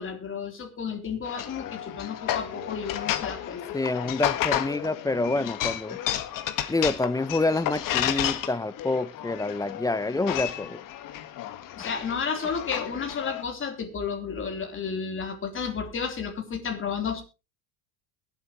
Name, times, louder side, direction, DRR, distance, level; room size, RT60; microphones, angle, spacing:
voice 1, 0.0-3.6 11.8-17.2, left 6 dB, 30° left, 3.5 m, -32 dB
sound 1, 1.2-13.4, left 12 dB, 55° left, 1.5 m, -32 dB
voice 2, 3.7-6.0 6.7-10.8, left 2 dB, 10° left, 0.7 m, -27 dB
22.5 x 8.1 x 3.0 m
supercardioid pair, 105°, 39 cm